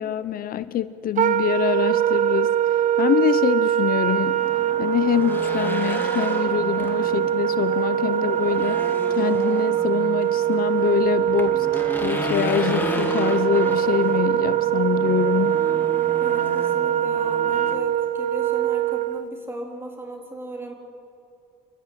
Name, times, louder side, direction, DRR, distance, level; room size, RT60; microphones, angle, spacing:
voice 1, 0.0-4.4 4.8-8.9 9.1-15.7, left 11 dB, 60° left, 14 dB, 0.7 m, -25 dB
Wind instrument woodwind instrument, 1.2-19.3, right 11 dB, 50° right, 0.8 m, -23 dB
Race car auto racing / Engine, 4.2-17.8, left 2 dB, 10° left, 2.8 m, -33 dB
voice 2, 16.2-20.7, right 2 dB, 15° right, 2 dB, 4.0 m, -36 dB
28.5 x 13.0 x 9.9 m, 2.7 s
cardioid pair, 110°, 17 cm